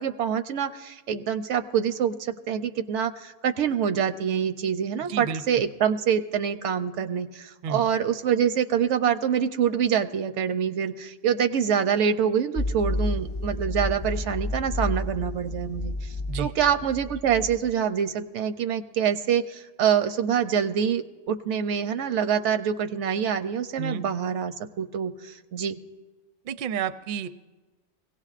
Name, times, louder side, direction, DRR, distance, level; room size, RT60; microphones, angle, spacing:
voice 1, 0.0-25.7, right 8 dB, 85° right, 9 dB, 0.9 m, -26 dB
voice 2, 5.1-5.6 7.6-7.9 16.3-16.5 23.8-24.0 26.4-27.3, right 7 dB, 60° right, 11 dB, 0.6 m, -31 dB
sound 1, 12.6-17.7, left 1 dB, 35° left, 0.5 m, -31 dB
22.5 x 17.0 x 2.5 m, 1.2 s
omnidirectional pair, 1.2 m